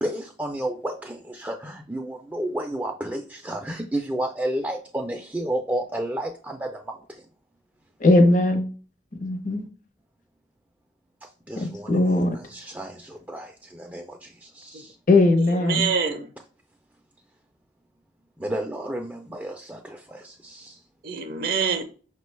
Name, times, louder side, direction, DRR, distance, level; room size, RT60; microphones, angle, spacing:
voice 1, 0.0-7.3 11.2-15.0 18.4-20.8, right 1 dB, 10° right, 0.3 m, -32 dB
voice 2, 8.0-8.7 9.2-9.7 11.6-12.4 15.1-15.9, left 2 dB, 45° left, 0.7 m, -19 dB
voice 3, 15.3-16.3 21.0-21.8, right 6 dB, 55° right, 0.6 m, -26 dB
5.5 x 2.2 x 3.2 m
head